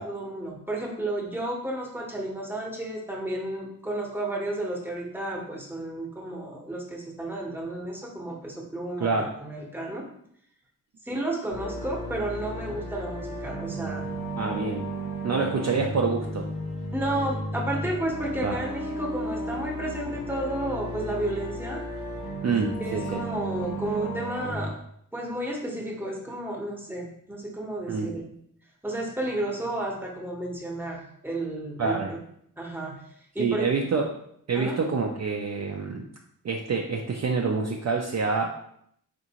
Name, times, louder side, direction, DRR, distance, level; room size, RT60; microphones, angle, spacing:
voice 1, 0.0-10.1 11.0-14.1 16.9-21.8 22.8-24.8 25.1-28.3 28.8-32.2 32.6-33.0 33.3-33.6 34.5-34.7, right 1 dB, 5° right, -1 dB, 0.8 m, -32 dB
voice 2, 9.0-9.3 14.4-14.9 15.2-16.5 18.4-18.6 22.4-23.2 27.9-28.1 31.8-32.1 33.4-34.1 34.5-36.0 36.4-38.5, right 4 dB, 50° right, 1 dB, 0.4 m, -27 dB
sound 1, 11.5-24.7, right 1 dB, 85° left, 0.9 m, -34 dB
3.8 x 2.6 x 2.9 m, 0.69 s
wide cardioid pair, 60°, 35 cm